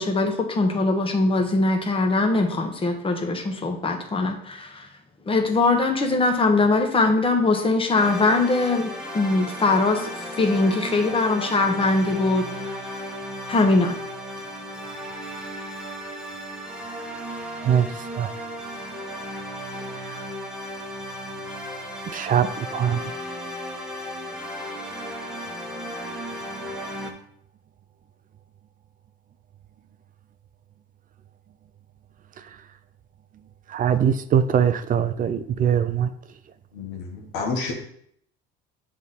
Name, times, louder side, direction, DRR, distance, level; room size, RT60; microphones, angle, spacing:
voice 1, 0.0-4.9 5.3-13.0 13.5-14.0, left 3 dB, 25° left, 3 dB, 1.2 m, -22 dB
sound 1, 7.9-27.1, equal, 5° right, 1.2 m, -35 dB
voice 2, 22.1-23.0 33.7-36.1, right 8 dB, 40° right, 11 dB, 0.5 m, -22 dB
voice 3, 36.7-37.7, left 4 dB, 85° left, 1 dB, 1.4 m, -29 dB
7.2 x 3.6 x 4.2 m, 0.67 s
supercardioid pair, 90°, 21 cm